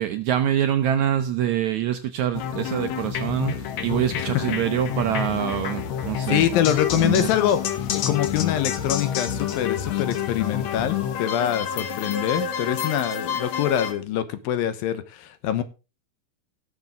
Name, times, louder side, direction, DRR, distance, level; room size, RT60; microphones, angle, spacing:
voice 1, 0.0-6.5 6.9-7.3, right 10 dB, 75° right, 9 dB, 1.7 m, -25 dB
sound 1, 2.3-13.9, left 8 dB, 60° left, 2.2 m, -28 dB
voice 2, 4.1-4.6 6.3-7.6 7.9-15.6, left 11 dB, 85° left, 12 dB, 2.8 m, -25 dB
17.5 x 6.8 x 3.6 m, 0.30 s
omnidirectional pair, 4.1 m